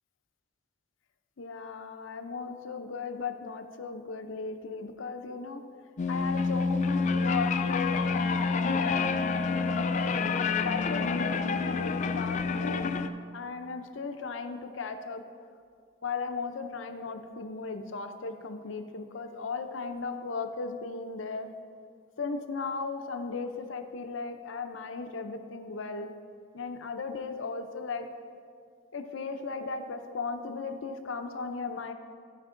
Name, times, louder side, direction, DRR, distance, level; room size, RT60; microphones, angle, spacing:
voice 1, 1.4-5.6 6.1-10.1 10.6-12.9 13.3-15.2 16.0-21.5 22.2-26.1 26.5-28.1 28.9-31.9, left 4 dB, 70° left, 7 dB, 0.6 m, -36 dB
sound 1, 6.0-13.1, left 4 dB, 35° left, 0.3 m, -28 dB
13.5 x 5.3 x 3.8 m, 2.3 s
head